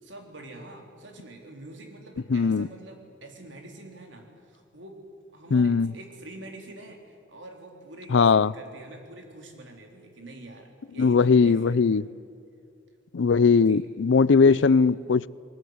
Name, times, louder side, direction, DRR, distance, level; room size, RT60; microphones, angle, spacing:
voice 1, 0.0-5.0 5.3-12.2 13.6-13.9 14.4-14.8, right 2 dB, 85° right, 3.6 m, -45 dB
voice 2, 2.3-2.7 5.5-5.9 8.1-8.5 11.0-12.0 13.1-15.3, left 5 dB, 80° left, 0.5 m, -19 dB
21.0 x 19.5 x 9.6 m
head